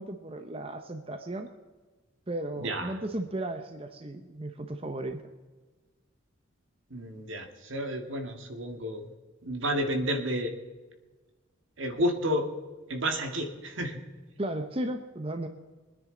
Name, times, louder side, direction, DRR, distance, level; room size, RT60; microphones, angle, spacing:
voice 1, 0.0-1.5 2.3-5.2 14.4-15.5, right 1 dB, 30° right, 6 dB, 0.8 m, -35 dB
voice 2, 2.6-2.9 6.9-9.0 9.5-10.5 11.8-12.5 12.9-14.0, equal, 70° right, 5 dB, 1.8 m, -31 dB
24.0 x 9.9 x 3.9 m, 1.3 s
head